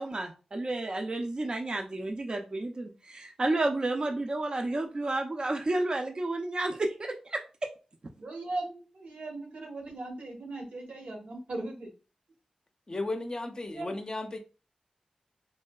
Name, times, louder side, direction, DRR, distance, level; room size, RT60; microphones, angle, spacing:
voice 1, 0.0-7.4, right 2 dB, 40° right, 0.4 m, -31 dB
voice 2, 8.1-11.9 13.6-13.9, right 2 dB, 80° right, 1.0 m, -38 dB
voice 3, 12.9-14.4, left 2 dB, 35° left, 0.5 m, -34 dB
3.1 x 2.6 x 2.3 m
wide cardioid pair, 70°, 2 cm